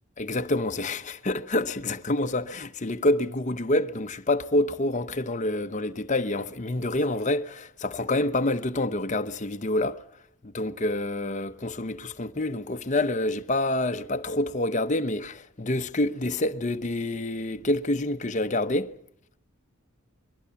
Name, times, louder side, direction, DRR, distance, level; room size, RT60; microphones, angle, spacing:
voice 1, 0.2-10.0 10.4-18.9, left 1 dB, 35° left, 0.9 m, -27 dB
22.5 x 22.0 x 7.0 m
head